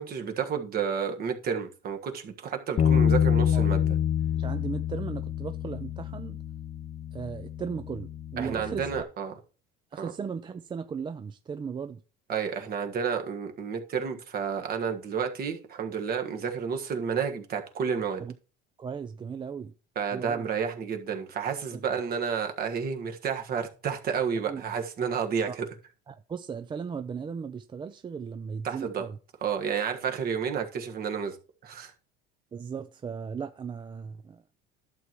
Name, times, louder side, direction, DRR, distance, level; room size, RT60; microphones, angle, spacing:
voice 1, 0.0-4.0 8.4-9.4 10.0-10.1 12.3-18.2 19.9-25.7 28.6-29.0 29.4-31.4 31.6-31.9, right 6 dB, 50° right, 1.5 m, -31 dB
Bass guitar, 2.8-9.0, left 9 dB, 35° left, 0.5 m, -27 dB
voice 2, 4.3-6.4 7.1-8.9 9.9-12.0 18.2-18.3 18.8-19.7 20.1-20.5 21.7-21.8 24.5-24.6 25.5-25.6 26.1-29.2 32.5-34.4, right 6 dB, 25° right, 0.4 m, -37 dB
11.5 x 7.7 x 3.0 m
cardioid pair, 110°, 21 cm